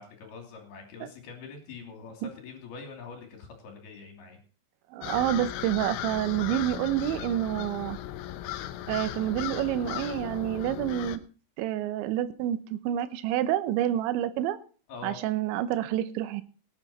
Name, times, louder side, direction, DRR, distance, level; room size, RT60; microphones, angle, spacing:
voice 1, 0.0-4.4 14.9-15.2, left 5 dB, 55° left, 3 dB, 4.5 m, -44 dB
voice 2, 4.9-8.0 8.9-11.2 11.6-14.6 15.0-16.4, right 12 dB, 80° right, 10 dB, 3.1 m, -28 dB
sound 1, 5.0-11.2, left 13 dB, 80° left, 3.0 m, -36 dB
18.0 x 9.3 x 4.3 m, 0.39 s
omnidirectional pair, 5.6 m